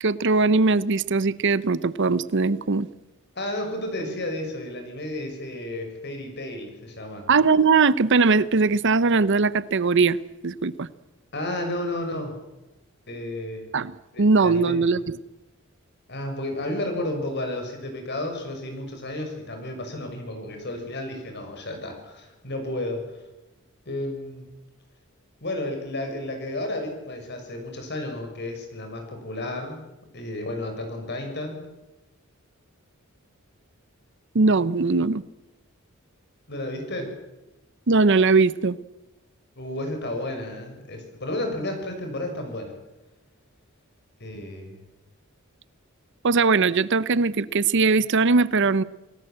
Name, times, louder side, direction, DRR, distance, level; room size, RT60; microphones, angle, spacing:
voice 1, 0.0-2.9 7.3-10.2 10.4-10.9 13.7-13.9 14.2-15.2 34.3-35.2 37.9-38.8 46.2-48.8, right 4 dB, 60° right, 18 dB, 0.8 m, -20 dB
voice 2, 3.4-7.3 11.3-12.4 13.1-13.7 14.1-14.8 16.1-23.0 23.9-24.5 25.4-29.8 30.1-31.7 36.5-37.1 39.6-42.7 44.2-44.8, left 1 dB, 55° left, 4 dB, 6.8 m, -32 dB
28.5 x 18.5 x 7.8 m, 1.0 s
head